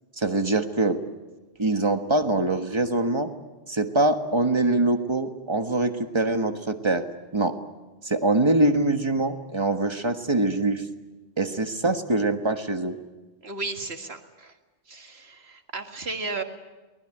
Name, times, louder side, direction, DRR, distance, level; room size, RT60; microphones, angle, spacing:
voice 1, 0.2-1.0 1.6-3.3 3.7-7.0 7.3-7.6 8.0-10.8 11.4-13.0, right 2 dB, 25° right, 6 dB, 1.5 m, -23 dB
voice 2, 13.4-14.6 14.9-16.4, right 3 dB, 60° right, 5 dB, 2.1 m, -34 dB
23.5 x 20.0 x 9.1 m, 1.2 s
omnidirectional pair, 1.2 m